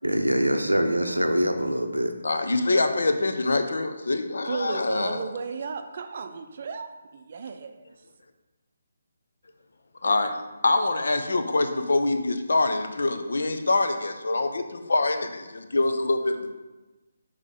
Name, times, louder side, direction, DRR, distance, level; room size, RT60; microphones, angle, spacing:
voice 1, 0.0-2.1, right 1 dB, 85° right, 6 dB, 0.7 m, -24 dB
voice 2, 2.2-5.2 10.0-10.4 10.6-16.6, left 2 dB, 60° left, 7 dB, 0.7 m, -25 dB
voice 3, 4.5-7.8, right 5 dB, 40° right, 7 dB, 0.5 m, -34 dB
6.5 x 4.9 x 3.7 m, 1.1 s
figure-of-eight pair, 145°, 0 cm